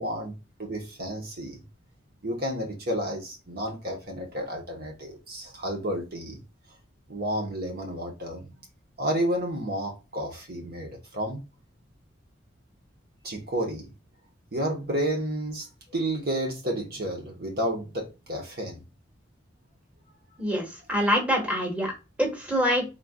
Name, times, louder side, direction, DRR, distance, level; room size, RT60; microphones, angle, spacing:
voice 1, 0.0-1.6 2.2-6.4 7.1-8.5 9.0-11.5 13.2-13.9 14.5-18.8, right 1 dB, 55° right, 1.3 m, -31 dB
voice 2, 20.4-21.9 22.2-22.8, equal, 5° right, 1.5 m, -25 dB
4.5 x 3.9 x 2.3 m
head